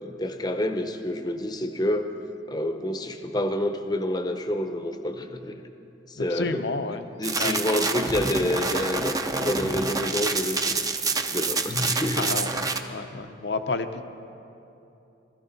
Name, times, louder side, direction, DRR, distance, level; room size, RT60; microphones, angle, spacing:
voice 1, 0.0-2.1 2.5-5.6 6.1-6.7 7.2-12.4, left 1 dB, 20° left, 7 dB, 0.7 m, -28 dB
voice 2, 6.2-7.0 7.4-7.6 12.2-14.0, left 3 dB, 65° left, 8 dB, 0.7 m, -31 dB
sound 1, 7.2-12.8, right 3 dB, 20° right, 0.6 m, -27 dB
21.0 x 14.0 x 4.0 m, 3.0 s
head